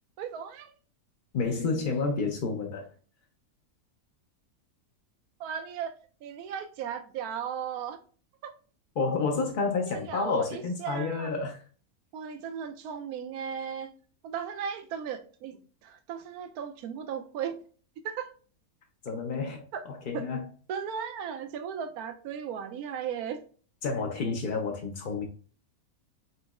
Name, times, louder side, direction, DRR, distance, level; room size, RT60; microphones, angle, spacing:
voice 1, 0.2-0.7 5.4-5.9 6.2-8.0 8.4-8.5 9.9-11.3 12.1-13.9 14.2-17.6 18.0-18.3 19.7-19.8 20.1-20.3 20.7-23.4, right 8 dB, 85° right, 1.1 m, -36 dB
voice 2, 1.3-2.9 9.0-11.6 19.0-20.4 23.8-25.2, left 4 dB, 55° left, 0.5 m, -30 dB
5.5 x 3.0 x 2.3 m
omnidirectional pair, 1.6 m